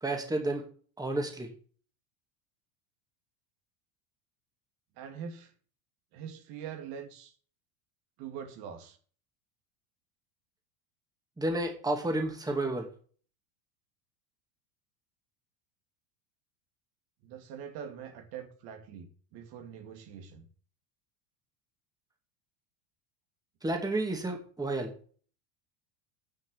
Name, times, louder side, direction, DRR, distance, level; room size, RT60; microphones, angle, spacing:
voice 1, 0.0-0.6 1.0-1.5 11.4-12.9 23.6-24.9, right 2 dB, 10° right, 2.5 m, -31 dB
voice 2, 5.0-5.5 6.1-7.3 8.2-9.0 17.2-20.5, right 7 dB, 60° right, 2.6 m, -43 dB
10.0 x 6.4 x 8.2 m
supercardioid pair, 125°, 44 cm